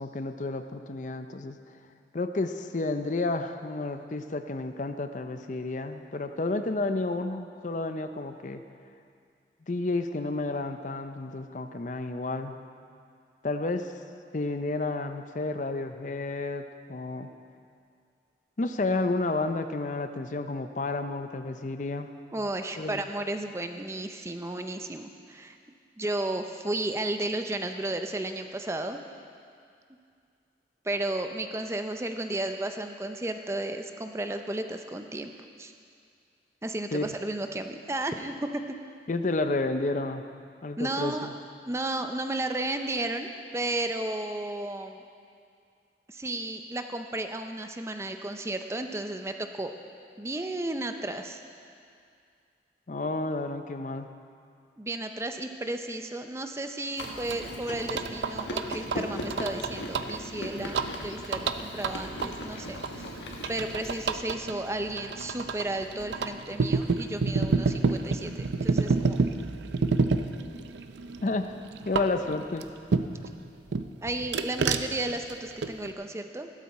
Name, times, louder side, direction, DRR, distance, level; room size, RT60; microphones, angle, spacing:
voice 1, 0.0-1.6 2.1-8.6 9.7-12.6 13.4-13.9 14.3-17.3 18.6-22.1 22.8-23.0 36.9-37.1 39.1-40.2 40.6-41.3 52.9-54.1 71.2-71.5 71.9-72.7, left 2 dB, 45° left, 8 dB, 0.6 m, -31 dB
voice 2, 22.3-25.6 26.0-29.0 30.8-35.3 35.6-35.7 36.6-38.6 40.8-41.4 41.7-45.0 46.1-49.7 50.2-51.4 54.8-63.1 63.5-69.2 74.0-76.5, right 2 dB, 15° right, 6 dB, 0.5 m, -33 dB
Chewing mastication, 57.0-64.2, left 1 dB, 80° left, 1.4 m, -39 dB
sound 1, 57.0-73.3 73.7-75.9, right 4 dB, 75° right, 0.5 m, -30 dB
15.5 x 12.5 x 4.2 m, 2.3 s
head